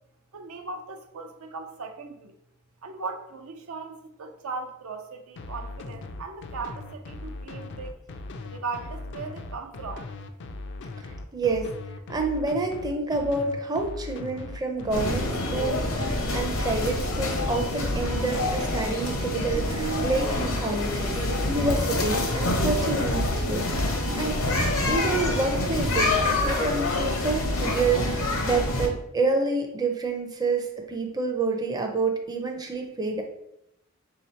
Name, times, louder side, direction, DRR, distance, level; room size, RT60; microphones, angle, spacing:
voice 1, 0.3-2.3 2.8-8.0 8.4-10.2, right 4 dB, 80° right, 5 dB, 0.5 m, -38 dB
sound 1, 5.4-18.6, left 2 dB, 55° left, 0.4 m, -39 dB
voice 2, 11.3-11.7 12.1-24.4 24.9-33.2, right 3 dB, 20° right, 3 dB, 0.5 m, -28 dB
sound 2, 14.9-28.9, left 1 dB, 75° left, 0.8 m, -26 dB
3.4 x 2.8 x 4.3 m, 0.80 s
head